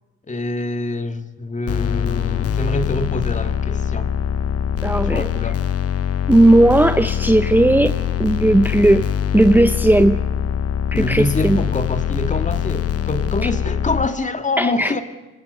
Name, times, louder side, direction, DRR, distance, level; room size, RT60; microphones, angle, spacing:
voice 1, 0.3-4.1 5.0-5.6 10.9-15.0, left 2 dB, 25° left, 2.1 m, -25 dB
sound 1, 1.7-14.1, left 9 dB, 50° left, 0.9 m, -23 dB
voice 2, 4.8-5.3 6.3-7.9 8.2-9.1 9.3-10.2 10.9-11.6 13.4-13.5 14.6-14.9, right 1 dB, 5° right, 0.8 m, -15 dB
27.0 x 25.5 x 6.8 m
cardioid pair, 90°, 30 cm